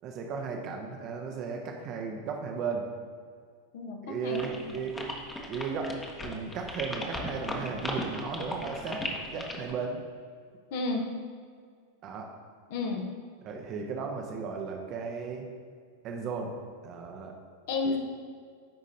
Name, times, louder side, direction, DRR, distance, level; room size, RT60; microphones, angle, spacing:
voice 1, 0.0-2.9 4.0-5.1 5.5-5.9 6.2-10.0 12.0-12.3 13.4-15.5 16.0-16.5 16.8-17.3 17.8-18.0, right 5 dB, 35° right, 2 dB, 0.8 m, -35 dB
voice 2, 3.7-4.8 10.7-11.0 12.7-13.1 17.7-18.0, left 3 dB, 50° left, 3 dB, 1.0 m, -32 dB
sound 1, 4.3-9.7, left 2 dB, 15° left, 1.1 m, -36 dB
13.0 x 5.1 x 2.8 m, 2.1 s
figure-of-eight pair, 90°, 0 cm